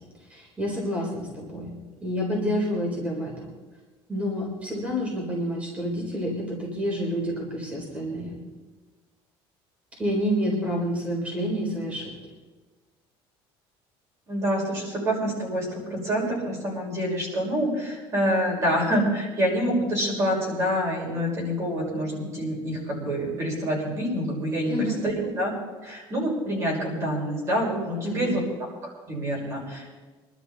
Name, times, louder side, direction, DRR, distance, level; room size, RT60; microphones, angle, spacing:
voice 1, 0.3-1.8 2.0-3.5 4.1-8.4 10.0-12.1 24.6-25.0 28.0-28.4, equal, 10° right, -2 dB, 4.1 m, -28 dB
voice 2, 14.3-25.5 25.8-28.4 28.8-29.9, equal, 30° right, -2 dB, 5.5 m, -27 dB
25.0 x 12.5 x 4.2 m, 1.3 s
cardioid pair, 175°, 10 cm